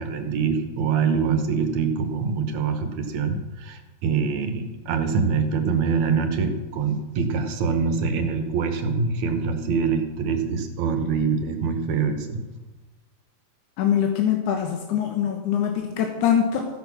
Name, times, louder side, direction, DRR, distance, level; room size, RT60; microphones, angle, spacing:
voice 1, 0.0-12.4, right 5 dB, 70° right, 7 dB, 2.4 m, -24 dB
voice 2, 13.8-16.7, left 9 dB, 80° left, 3 dB, 2.6 m, -23 dB
14.5 x 10.0 x 6.2 m, 1.2 s
omnidirectional pair, 3.5 m